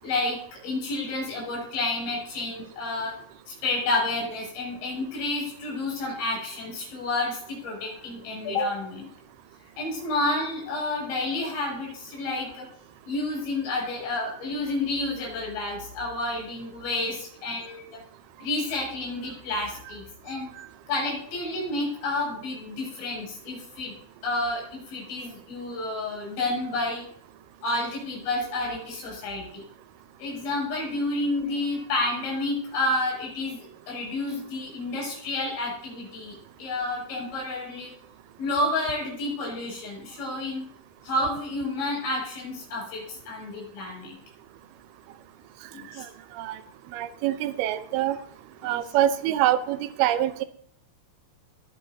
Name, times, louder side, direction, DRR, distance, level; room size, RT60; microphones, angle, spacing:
voice 1, 0.0-3.2 3.5-9.1 9.8-12.7 13.1-18.0 18.4-20.5 20.9-23.9 24.2-27.1 27.6-29.6 30.2-37.9 38.4-40.6 41.0-44.2 45.7-46.0 48.6-48.9, left 2 dB, 80° left, -3 dB, 9.7 m, -30 dB
voice 2, 46.9-48.2 48.6-50.4, right 12 dB, 85° right, 10 dB, 2.2 m, -25 dB
21.5 x 10.5 x 2.7 m, 0.63 s
omnidirectional pair, 5.5 m